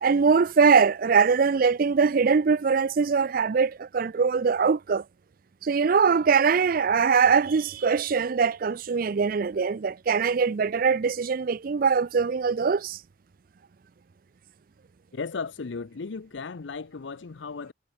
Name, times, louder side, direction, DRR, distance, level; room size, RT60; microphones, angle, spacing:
voice 1, 0.0-5.0 5.6-13.0, right 5 dB, 50° right, 0.4 m, -22 dB
voice 2, 15.1-17.7, left 4 dB, 75° left, 0.6 m, -35 dB
head